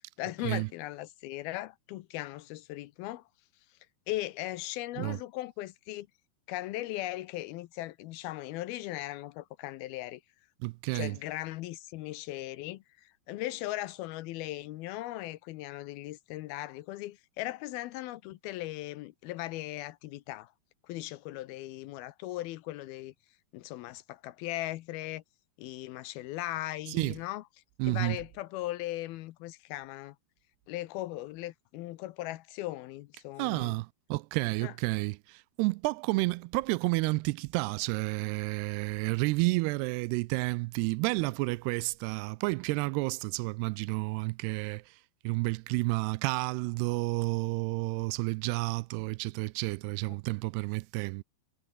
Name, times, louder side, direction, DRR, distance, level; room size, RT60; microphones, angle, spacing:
voice 1, 0.2-3.2 4.1-6.1 6.5-10.2 10.9-20.5 20.9-23.1 23.5-25.2 25.6-27.4 27.8-30.2 30.7-33.8 34.6-34.7 50.1-50.2, left 16 dB, 75° left, 2.5 m, -38 dB
voice 2, 10.6-11.2 26.9-27.2 27.8-28.2 33.4-44.8 45.2-51.2, right 24 dB, 85° right, 2.6 m, -30 dB
omnidirectional pair, 4.6 m